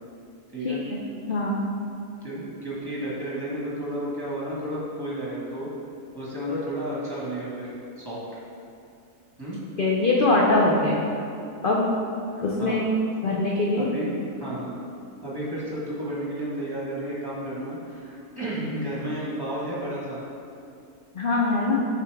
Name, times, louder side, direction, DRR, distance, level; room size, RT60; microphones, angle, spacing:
voice 1, 0.6-1.0 1.3-1.6 9.8-11.0 11.6-11.8 12.4-12.8 13.2-13.9 21.1-21.8, left 2 dB, 65° left, -3 dB, 0.5 m, -22 dB
voice 2, 2.2-5.7 6.1-7.7 8.0-8.2 9.4-9.6 12.6-12.8 13.7-14.7 15.2-20.2, right 1 dB, 15° right, -7 dB, 1.3 m, -32 dB
6.8 x 4.9 x 3.4 m, 2.6 s
omnidirectional pair, 1.6 m